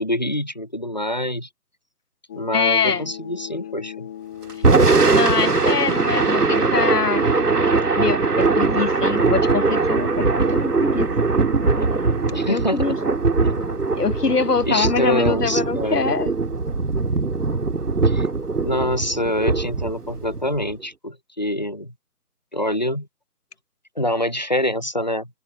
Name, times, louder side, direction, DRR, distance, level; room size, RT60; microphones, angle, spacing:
voice 1, 0.0-1.5 2.3-4.1 12.3-13.0 13.4-13.5 14.7-16.1 18.0-18.3 18.6-21.9 22.5-23.1 24.0-25.3, left 1 dB, 30° left, 0.8 m, -25 dB
sound 1, 2.3-14.3, left 10 dB, 10° left, 3.0 m, -39 dB
voice 2, 2.5-3.1 5.1-7.3 7.9-11.1 12.5-13.0 14.0-16.3, left 5 dB, 90° left, 1.3 m, -24 dB
Thunder / Rain, 4.5-20.7, right 4 dB, 90° right, 2.5 m, -21 dB
figure-of-eight pair, 175°, 46 cm